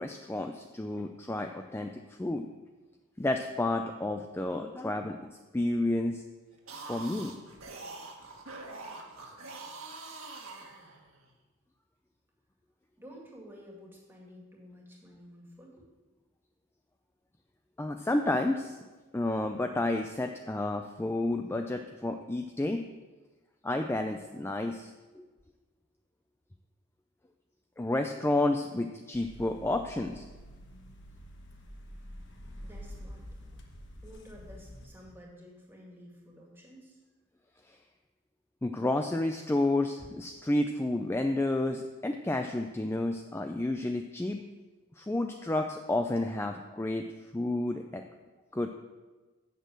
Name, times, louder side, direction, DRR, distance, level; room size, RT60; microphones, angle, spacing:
voice 1, 0.0-2.5 3.2-5.2 5.5-6.2 6.9-7.4 17.8-18.8 19.1-22.8 23.6-25.3 27.8-30.2 37.7-37.8 38.6-44.4 45.0-47.0 47.3-48.0 48.5-48.7, left 2 dB, 10° left, 5 dB, 0.3 m, -31 dB
sound 1, 6.5-11.3, right 3 dB, 70° right, 1.6 m, -44 dB
voice 2, 13.0-15.9 32.6-33.2 34.0-37.0, equal, 10° right, -2 dB, 2.1 m, -51 dB
sound 2, 29.1-34.9, equal, 55° left, 1.3 m, -47 dB
8.1 x 6.5 x 7.6 m, 1.3 s
head